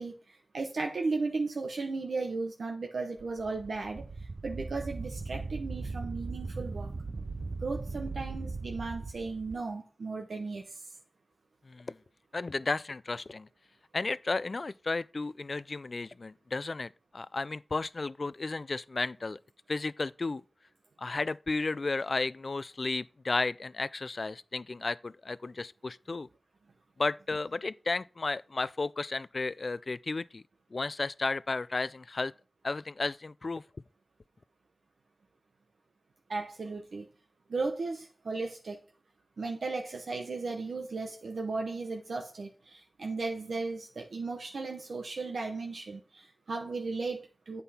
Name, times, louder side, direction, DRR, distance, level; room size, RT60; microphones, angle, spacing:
voice 1, 0.0-4.0 4.4-6.9 7.6-10.8 36.3-37.1 37.5-38.8 39.4-47.6, right 3 dB, 90° right, 0.8 m, -35 dB
Wind, 3.2-9.6, right 3 dB, 65° right, 0.5 m, -39 dB
voice 2, 12.3-13.5 13.9-19.4 19.7-20.4 21.0-26.3 27.0-30.4 30.7-32.3 32.6-33.6, left 3 dB, 60° left, 0.3 m, -33 dB
8.0 x 5.4 x 4.2 m
cardioid pair, 45°, 0 cm